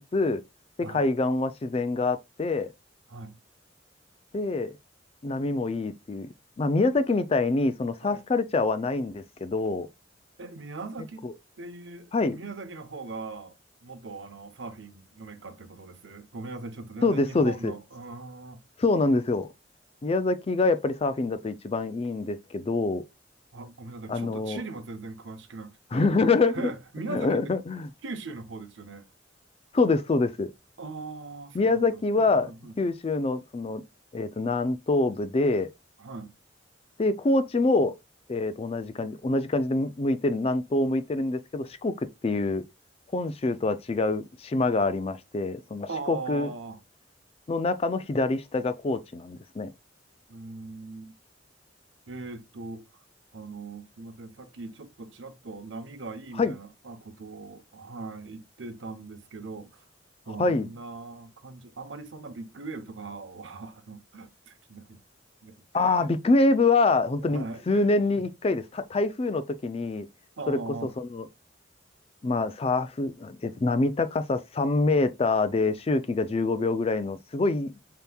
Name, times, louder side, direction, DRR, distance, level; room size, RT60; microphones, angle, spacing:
voice 1, 0.9-2.7 4.3-4.7 5.2-6.3 6.6-9.9 11.2-11.3 12.1-12.4 17.0-17.7 18.8-19.5 20.0-23.0 24.1-24.6 25.9-26.6 27.1-27.9 29.7-30.5 31.5-32.5 32.8-33.8 34.1-35.7 37.0-37.9 38.3-42.6 43.1-46.5 47.5-49.7 56.4-56.5 60.4-60.7 65.7-70.1 70.5-70.6 71.0-71.3 72.2-77.7, left 3 dB, 30° left, 0.4 m, -25 dB
voice 2, 10.4-11.3 11.6-13.5 13.8-18.6 23.5-26.1 26.5-27.5 28.0-29.1 30.8-32.8 36.0-36.3 45.9-46.8 50.3-51.1 52.1-52.8 53.3-59.8 60.3-65.0 65.4-66.1 67.2-67.9 70.4-70.9, right 3 dB, 85° right, 0.8 m, -40 dB
6.8 x 2.9 x 2.3 m
head